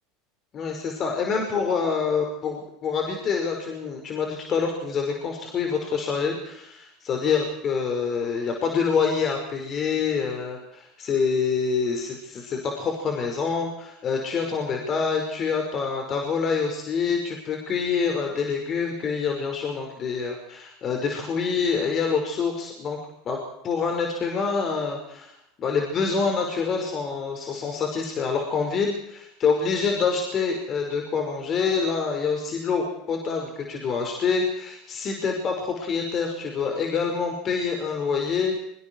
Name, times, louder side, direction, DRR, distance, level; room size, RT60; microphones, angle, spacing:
voice 1, 0.5-23.0 23.2-23.4 23.6-25.3 25.6-38.5, left 5 dB, 40° left, 2 dB, 5.3 m, -26 dB
25.0 x 24.5 x 4.7 m, 0.79 s
hypercardioid pair, 80°, 0 cm